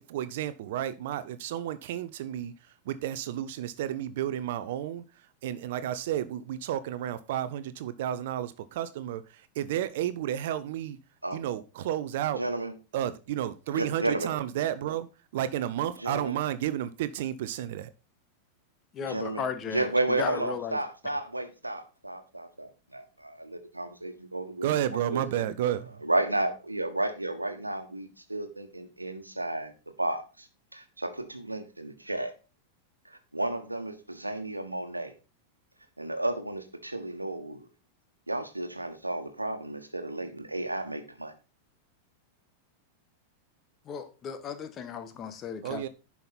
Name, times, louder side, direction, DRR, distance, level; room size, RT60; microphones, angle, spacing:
voice 1, 0.0-11.0 11.3-12.4 12.9-15.1 15.3-17.9 24.6-26.0 45.6-45.9, right 11 dB, 55° right, 0.6 m, -32 dB
voice 2, 12.4-12.7 13.7-14.3 16.0-16.3 19.0-24.7 25.1-25.2 26.0-29.7 30.0-30.5 30.7-32.3 33.0-35.1 36.0-37.7 38.3-41.3, right 2 dB, 90° right, 1.3 m, -32 dB
voice 3, 18.9-20.8 43.8-45.9, left 6 dB, 30° left, 1.2 m, -35 dB
10.5 x 5.7 x 4.2 m
figure-of-eight pair, 90°, 0 cm